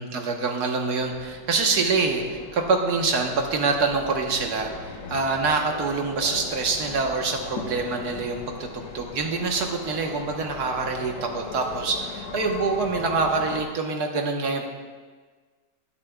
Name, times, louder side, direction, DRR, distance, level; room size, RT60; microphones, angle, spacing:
voice 1, 0.0-14.7, right 4 dB, 60° right, 2 dB, 1.7 m, -25 dB
sound 1, 1.0-13.6, left 4 dB, 70° left, 1.7 m, -39 dB
20.0 x 10.5 x 2.4 m, 1.5 s
omnidirectional pair, 1.9 m